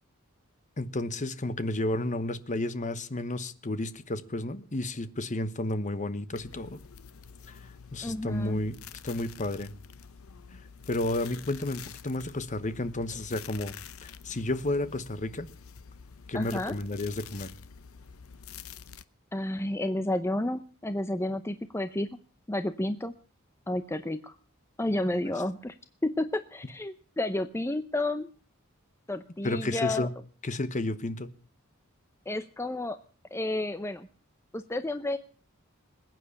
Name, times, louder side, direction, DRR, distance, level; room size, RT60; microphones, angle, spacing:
voice 1, 0.8-6.8 7.9-8.8 9.0-9.7 10.9-13.7 14.0-15.5 16.3-17.5 29.4-30.1 30.4-31.3, left 2 dB, 35° left, 1.1 m, -31 dB
sound 1, 6.3-19.0, left 7 dB, 90° left, 0.8 m, -48 dB
voice 2, 8.0-8.6 16.3-16.7 19.3-22.1 22.5-23.1 23.7-24.4 24.8-25.7 26.0-28.3 29.1-30.1 32.3-33.0 33.3-34.1 34.5-35.2, left 1 dB, 15° left, 0.7 m, -31 dB
20.5 x 9.2 x 7.1 m
head